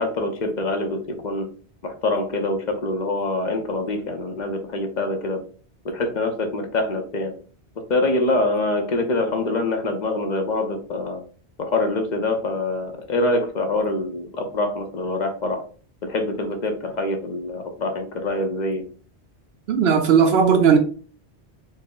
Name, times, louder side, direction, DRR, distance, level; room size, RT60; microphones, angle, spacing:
voice 1, 0.0-1.5 1.8-5.4 5.8-7.3 7.9-11.2 11.6-15.6 16.0-18.8, left 2 dB, 50° left, 0.7 m, -25 dB
voice 2, 19.7-20.8, right 6 dB, 70° right, 0.8 m, -16 dB
4.1 x 2.0 x 3.7 m
omnidirectional pair, 1.1 m